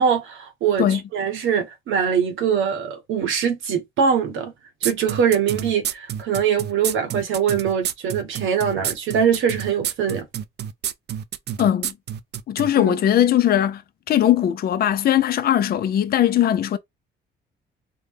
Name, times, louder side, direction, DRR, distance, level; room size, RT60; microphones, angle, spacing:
voice 1, 0.0-4.5 4.8-10.3 12.8-12.9, right 7 dB, 80° right, 1.1 m, -22 dB
sound 1, 4.8-12.7, right 10 dB, 55° right, 0.4 m, -28 dB
voice 2, 11.6-11.9 12.5-13.8 14.1-16.8, left 11 dB, 50° left, 0.5 m, -19 dB
3.7 x 2.1 x 3.4 m
cardioid pair, 90°, 20 cm